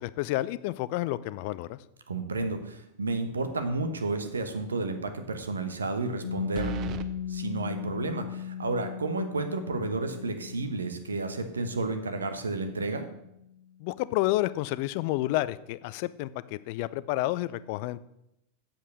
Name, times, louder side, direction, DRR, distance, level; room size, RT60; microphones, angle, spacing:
voice 1, 0.0-1.8 13.8-16.3 16.7-18.0, left 17 dB, 45° left, 17 dB, 0.4 m, -30 dB
voice 2, 2.1-6.7 7.3-13.0, right 3 dB, 75° right, 8 dB, 1.0 m, -31 dB
sound 1, 3.4-3.9 4.3-4.4 6.5-7.1, right 11 dB, 35° right, 0.6 m, -36 dB
Piano, 6.2-13.5, left 10 dB, 70° left, 0.8 m, -38 dB
8.2 x 7.2 x 6.3 m, 0.82 s
figure-of-eight pair, 90°, 0 cm